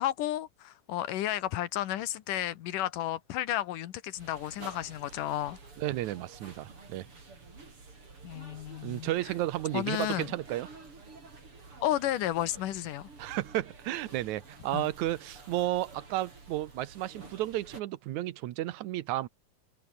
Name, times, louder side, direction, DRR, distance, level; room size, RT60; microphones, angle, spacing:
voice 1, 0.0-5.6 8.2-9.1 9.7-10.3 11.8-13.1 14.7-14.9, left 13 dB, 85° left, 2.8 m, -32 dB
sound 1, 4.2-17.8, right 3 dB, 40° right, 6.2 m, -50 dB
voice 2, 5.8-7.1 8.8-10.7 13.2-19.3, right 15 dB, 70° right, 2.2 m, -33 dB
omnidirectional pair, 3.7 m